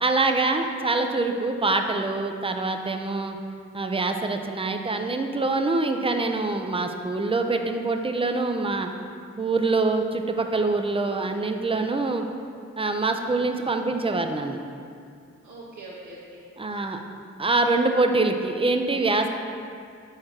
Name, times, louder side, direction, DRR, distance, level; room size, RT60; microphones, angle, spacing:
voice 1, 0.0-3.4 3.7-8.9 9.4-12.2 12.8-14.6 16.6-17.0 17.4-19.3, right 3 dB, 20° right, 5 dB, 0.6 m, -25 dB
voice 2, 13.5-13.8 15.4-17.0, right 2 dB, 70° right, -9 dB, 1.2 m, -44 dB
4.9 x 4.2 x 5.8 m, 2.4 s
supercardioid pair, 40°, 30 cm